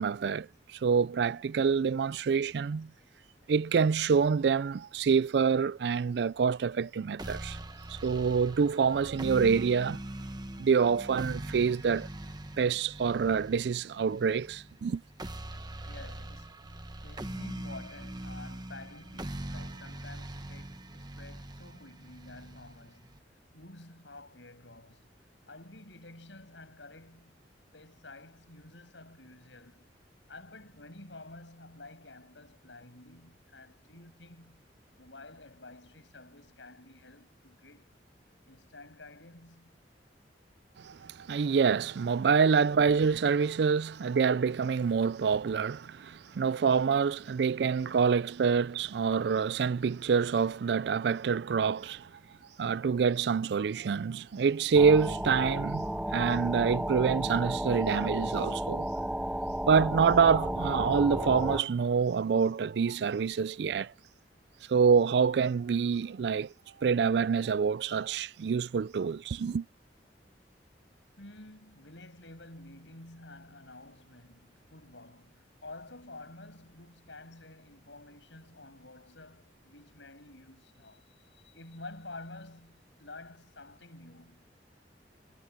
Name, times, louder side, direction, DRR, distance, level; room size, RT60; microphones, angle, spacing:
voice 1, 0.0-2.9 3.5-7.6 7.9-10.0 10.6-12.1 12.6-15.0 40.8-52.1 52.6-58.9 59.7-63.9 64.7-66.5 66.8-69.6, right 6 dB, 65° right, 0.4 m, -26 dB
sound 1, 7.2-23.2, right 1 dB, 25° right, 1.2 m, -42 dB
voice 2, 15.8-16.7 17.0-23.1 23.5-25.1 25.5-29.9 30.3-34.6 35.0-37.9 38.5-39.8 71.2-84.5, left 2 dB, 90° left, 7.8 m, -50 dB
sound 2, 54.7-61.6, right 1 dB, 5° right, 0.4 m, -33 dB
head